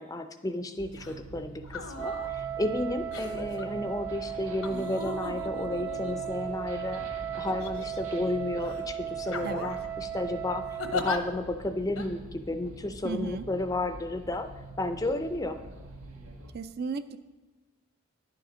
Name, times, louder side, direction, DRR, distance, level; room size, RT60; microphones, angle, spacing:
voice 1, 0.0-14.5 14.8-15.6, left 2 dB, 15° left, 9 dB, 0.4 m, -32 dB
sound 1, 0.8-16.5, right 1 dB, 85° right, 1.6 m, -46 dB
sound 2, 0.9-1.2 1.6-2.3 3.1-3.6 4.6-6.7 7.5-8.2 8.6-8.8 9.3-9.9 10.8-11.2 12.0-12.1, left 3 dB, 75° left, 0.9 m, -37 dB
Wind instrument woodwind instrument, 1.9-11.3, right 10 dB, 70° right, 1.3 m, -36 dB
voice 2, 13.0-13.4 16.5-17.2, right 4 dB, 45° right, 11 dB, 0.4 m, -34 dB
10.5 x 7.7 x 5.0 m, 1.3 s
head